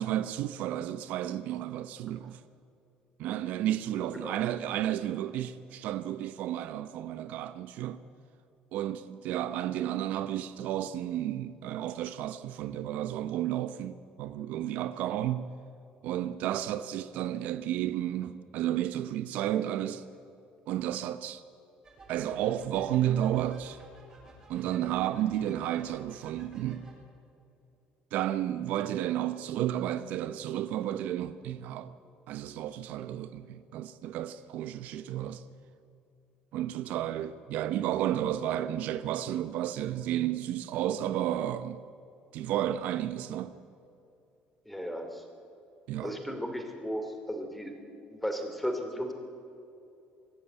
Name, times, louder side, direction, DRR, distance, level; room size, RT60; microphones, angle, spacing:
voice 1, 0.0-2.4 3.2-8.0 8.7-15.5 16.0-20.0 20.7-21.4 22.1-23.8 24.5-26.9 28.1-31.9 32.3-35.4 36.5-41.8 42.3-43.5 45.9-46.2, right 12 dB, 65° right, 0.7 m, -32 dB
sound 1, 21.8-26.9, right 2 dB, 20° right, 7.2 m, -52 dB
voice 2, 44.7-45.2 46.0-47.7 48.1-49.1, equal, 5° left, 2.6 m, -35 dB
24.0 x 14.0 x 9.0 m
cardioid pair, 160°, 3 cm